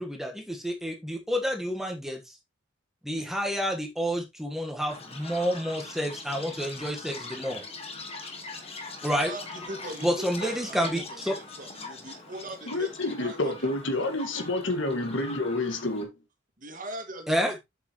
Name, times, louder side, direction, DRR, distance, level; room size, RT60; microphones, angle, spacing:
voice 1, 0.0-2.4 3.0-7.6 9.0-9.3 10.0-11.4 17.3-17.5, equal, ahead, 1.4 m, -29 dB
Chirp tweet, 4.9-16.0, left 3 dB, 30° left, 1.7 m, -42 dB
voice 2, 9.3-13.5 16.6-17.6, right 1 dB, 40° right, 2.2 m, -40 dB
voice 3, 12.7-16.1, left 2 dB, 65° left, 1.9 m, -29 dB
7.9 x 7.7 x 3.1 m
head